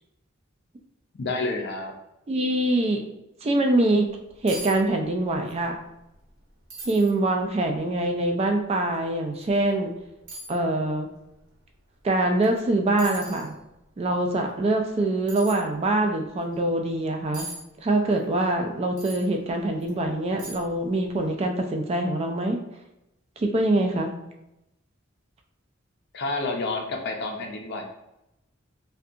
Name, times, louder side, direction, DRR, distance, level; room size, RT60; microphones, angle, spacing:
voice 1, 1.1-1.9 26.1-27.8, left 3 dB, 60° left, 2 dB, 0.5 m, -29 dB
voice 2, 2.3-3.0 3.4-4.1 4.4-5.8 6.9-9.9 10.5-11.1 12.0-13.5 14.0-17.5 17.8-22.6 23.4-24.1, right 2 dB, 30° right, 3 dB, 0.3 m, -24 dB
sound 1, 4.1-4.2 4.5-4.8 5.0-5.6 6.0-6.1 6.7-7.1 7.8-7.9 9.4-9.5 10.3-10.6 12.4-12.6 13.0-13.5 15.3-15.6 17.3-17.6 19.0-19.2 19.8-19.9 20.4-20.8 21.1-21.2, right 2 dB, 90° right, 0.8 m, -39 dB
2.7 x 2.2 x 2.4 m, 0.88 s
head